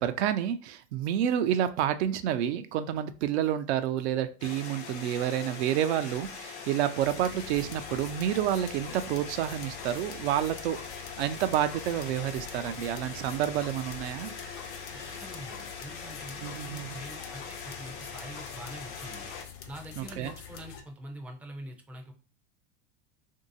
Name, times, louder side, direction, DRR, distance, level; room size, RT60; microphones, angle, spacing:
voice 1, 0.0-14.3 16.4-16.9 20.0-20.3, right 11 dB, 75° right, 10 dB, 0.5 m, -29 dB
sound 1, 4.4-19.4, left 5 dB, 80° left, 0.9 m, -42 dB
sound 2, 7.0-20.8, left 8 dB, 40° left, 0.6 m, -46 dB
voice 2, 15.1-19.3 19.7-22.1, right 1 dB, 5° right, 3 dB, 0.4 m, -45 dB
2.9 x 2.7 x 2.6 m, 0.36 s
hypercardioid pair, 105°, 34 cm